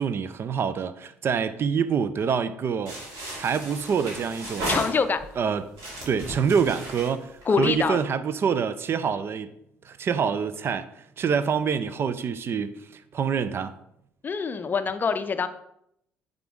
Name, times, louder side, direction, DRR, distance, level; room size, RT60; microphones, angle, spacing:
voice 1, 0.0-3.0 3.4-4.8 5.4-5.7 6.1-9.5 9.8-10.9 11.2-13.7, right 6 dB, 40° right, 0.4 m, -26 dB
sound 1, 2.9-5.3 5.7-8.0, right 1 dB, 60° right, 2.6 m, -35 dB
voice 2, 4.7-5.2 7.5-8.0 14.2-15.5, left 5 dB, 30° left, 0.5 m, -24 dB
9.1 x 3.8 x 3.6 m
figure-of-eight pair, 50°, 6 cm